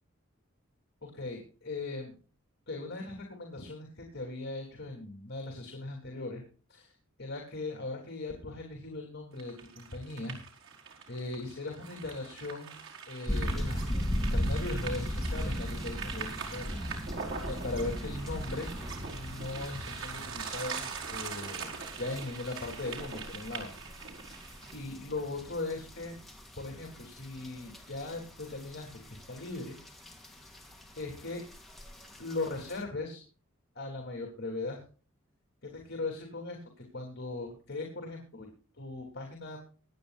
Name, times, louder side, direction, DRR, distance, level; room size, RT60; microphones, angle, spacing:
voice 1, 1.0-2.1 2.7-6.4 6.7-6.9 7.2-10.4 11.1-12.8 13.1-16.8 17.5-18.8 19.1-23.7 24.0-24.2 24.7-26.2 26.6-29.8 31.0-31.4 32.2-33.2 33.8-34.8 35.6-38.5 38.8-39.6, left 2 dB, 55° left, 2 dB, 3.6 m, -39 dB
sound 1, 9.4-24.8, right 6 dB, 70° right, 4.9 m, -42 dB
sound 2, 13.3-32.8, equal, ahead, 3.0 m, -38 dB
24.0 x 9.6 x 2.6 m, 0.38 s
head